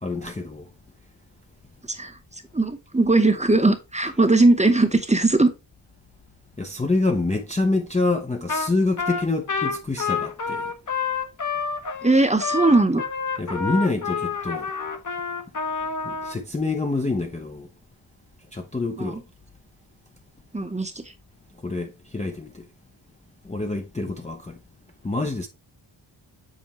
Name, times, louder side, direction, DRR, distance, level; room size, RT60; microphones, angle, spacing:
voice 1, 0.0-0.7 6.6-10.7 13.4-14.7 16.0-17.7 18.5-19.2 21.6-22.6 23.4-24.6 25.0-25.5, left 3 dB, 15° left, 0.5 m, -26 dB
voice 2, 2.5-5.5 12.0-13.0 19.0-19.2 20.5-21.0, right 2 dB, 15° right, 0.8 m, -19 dB
Trumpet, 8.5-8.7 9.0-16.4, left 5 dB, 40° left, 0.9 m, -28 dB
7.5 x 4.3 x 2.9 m
wide cardioid pair, 130°, 48 cm